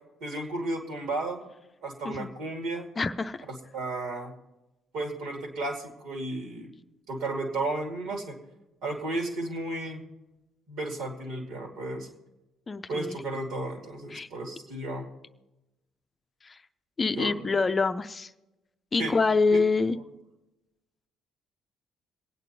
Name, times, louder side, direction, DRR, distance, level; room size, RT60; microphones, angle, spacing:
voice 1, 0.2-1.4 1.8-2.9 3.7-4.3 4.9-6.7 7.1-8.4 8.8-10.0 10.7-12.1 12.9-15.1 17.1-17.6 19.0-19.1 19.5-19.6, right 2 dB, 65° right, 2 dB, 2.4 m, -33 dB
voice 2, 3.0-3.4 12.7-13.2 14.1-14.3 16.4-16.5 17.0-18.3 18.9-20.0, left 4 dB, 30° left, 10 dB, 0.5 m, -26 dB
27.0 x 9.0 x 2.8 m, 0.99 s
hypercardioid pair, 50°, 0 cm